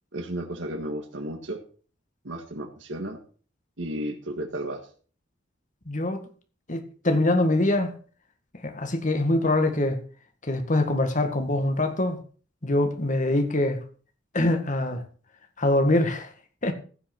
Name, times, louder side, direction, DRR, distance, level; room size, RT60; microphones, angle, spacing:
voice 1, 0.1-1.6 2.2-3.2 3.8-4.9, right 1 dB, 80° right, 1.7 m, -33 dB
voice 2, 5.9-6.2 6.7-7.9 8.6-10.0 10.4-12.2 12.6-13.8 14.3-15.0 15.6-16.3 16.6-16.7, left 1 dB, 45° left, 1.8 m, -24 dB
16.0 x 5.8 x 6.1 m
head